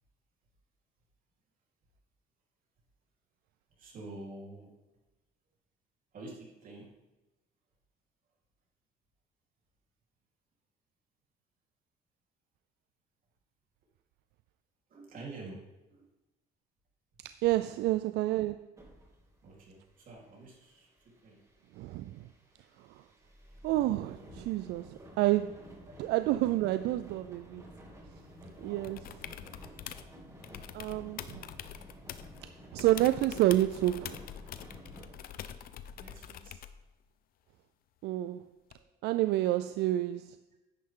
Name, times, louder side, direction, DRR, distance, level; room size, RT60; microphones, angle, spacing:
voice 1, 3.7-4.7 6.1-6.9 14.9-16.1 19.4-21.4 25.9-26.0 28.6-28.9 29.7-29.8 35.9-36.6 38.8-38.9, right 2 dB, 55° right, 3.8 m, -48 dB
voice 2, 17.2-18.7 21.8-22.3 22.9-23.0 23.6-25.7 26.0-27.6 28.6-29.0 30.7-31.4 32.4-34.2 38.0-38.5 39.0-40.4, right 15 dB, 80° right, 0.4 m, -29 dB
sound 1, 18.8-36.4, equal, 20° right, 2.7 m, -53 dB
sound 2, 28.8-30.1 30.4-32.4 32.8-36.8 38.7-38.8, left 10 dB, 60° left, 0.7 m, -45 dB
10.5 x 9.6 x 3.8 m
cardioid pair, 110°, 17 cm